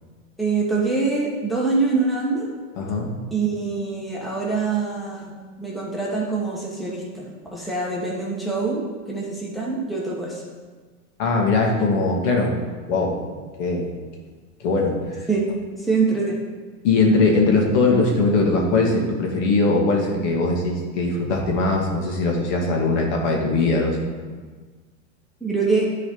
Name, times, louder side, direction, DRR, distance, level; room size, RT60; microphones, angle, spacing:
voice 1, 0.4-2.5 3.3-10.4 15.3-15.5 15.8-16.4 25.4-25.9, right 4 dB, ahead, -5 dB, 1.4 m, -24 dB
voice 2, 2.8-3.1 11.2-12.6 12.9-13.2 13.6-13.9 14.6-15.3 16.8-24.0, left 3 dB, 60° left, 0 dB, 2.0 m, -20 dB
10.5 x 4.1 x 5.5 m, 1.4 s
hypercardioid pair, 120°, 41 cm